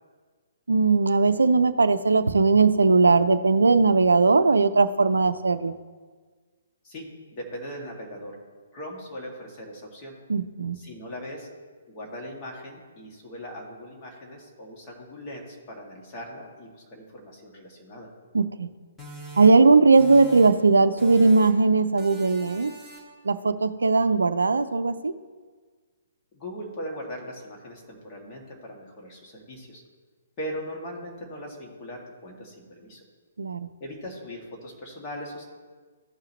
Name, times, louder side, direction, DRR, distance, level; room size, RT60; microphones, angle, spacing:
voice 1, 0.7-5.7 10.3-10.8 18.3-18.7 19.4-22.7 23.2-25.1 33.4-33.7, right 3 dB, 70° right, 12 dB, 0.5 m, -19 dB
voice 2, 6.8-8.4 8.7-10.1 10.7-11.5 11.9-18.1 26.3-29.8 30.4-33.0 33.8-35.4, equal, 30° left, -2 dB, 2.0 m, -39 dB
sound 1, 19.0-20.7 21.0-21.7 22.0-23.2, right 2 dB, ahead, 1.6 m, -44 dB
15.0 x 5.7 x 3.0 m, 1.5 s
figure-of-eight pair, 130°, 0 cm